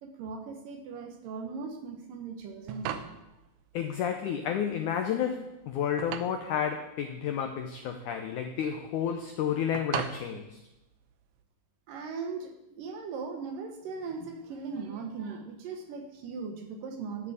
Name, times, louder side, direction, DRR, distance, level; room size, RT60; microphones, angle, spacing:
voice 1, 0.0-3.2 11.9-17.3, right 5 dB, 65° right, 4 dB, 2.5 m, -39 dB
sound 1, 2.4-11.4, right 9 dB, 85° right, 2.9 m, -41 dB
voice 2, 3.7-10.6, left 8 dB, 85° left, 5 dB, 1.7 m, -31 dB
13.0 x 6.9 x 8.7 m, 0.96 s
omnidirectional pair, 4.7 m